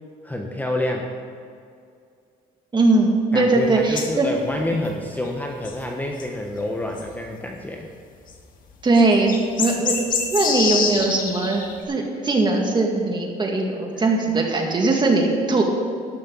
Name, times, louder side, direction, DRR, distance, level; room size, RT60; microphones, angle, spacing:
voice 1, 0.2-1.1 3.3-7.9, left 1 dB, 10° left, 1 dB, 1.1 m, -28 dB
voice 2, 2.7-4.3 8.8-10.0 10.3-15.6, right 2 dB, 25° right, 1 dB, 2.1 m, -20 dB
sound 1, 4.0-4.1 4.6-4.9 5.3-5.4 5.6-5.8 6.2-6.3 7.0-7.1 8.3-8.4 8.9-11.7, left 5 dB, 55° left, 1.7 m, -26 dB
12.0 x 12.0 x 4.0 m, 2.3 s
cardioid pair, 110°, 17 cm